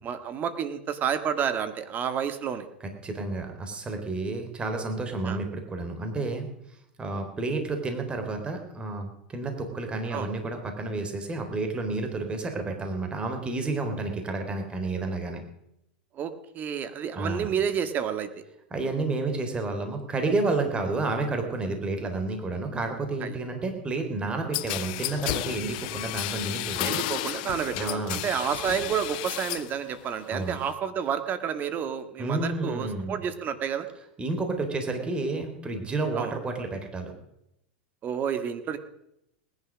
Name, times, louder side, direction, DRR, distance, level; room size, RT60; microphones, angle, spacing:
voice 1, 0.0-2.6 5.3-5.4 10.1-10.3 16.1-18.4 23.2-23.4 26.8-33.9 36.2-36.3 38.0-38.8, right 8 dB, 35° right, 10 dB, 1.9 m, -30 dB
voice 2, 3.0-6.5 7.0-15.4 17.2-17.5 18.7-27.0 27.8-28.2 30.3-30.6 32.2-33.2 34.2-37.1, right 3 dB, 20° right, 5 dB, 3.7 m, -30 dB
sound 1, 24.5-29.7 30.1-30.7, left 16 dB, 60° left, 0.7 m, -32 dB
19.0 x 11.0 x 6.3 m, 0.81 s
hypercardioid pair, 100°, 5 cm